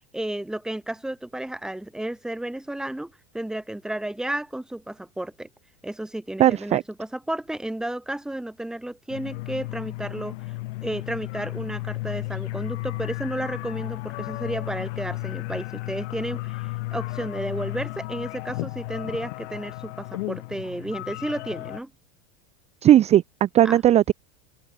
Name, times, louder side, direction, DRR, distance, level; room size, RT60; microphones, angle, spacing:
voice 1, 0.1-5.5 5.8-10.5 10.8-21.9 23.6-23.8, right 1 dB, ahead, 0.9 m, -32 dB
voice 2, 6.4-6.8 22.8-24.1, right 12 dB, 20° right, 0.5 m, -17 dB
sound 1, 9.1-21.8, left 21 dB, 70° left, 2.4 m, -33 dB
supercardioid pair, 155°, 36 cm